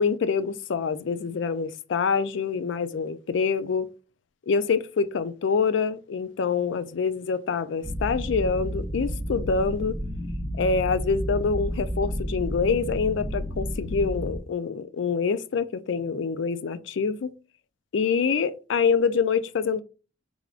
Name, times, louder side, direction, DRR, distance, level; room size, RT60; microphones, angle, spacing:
voice 1, 0.0-3.9 4.5-10.0 10.6-17.3 17.9-19.8, left 5 dB, 80° left, 0.4 m, -26 dB
sound 1, 7.8-14.4, equal, 25° right, 0.8 m, -31 dB
3.5 x 3.4 x 2.4 m
head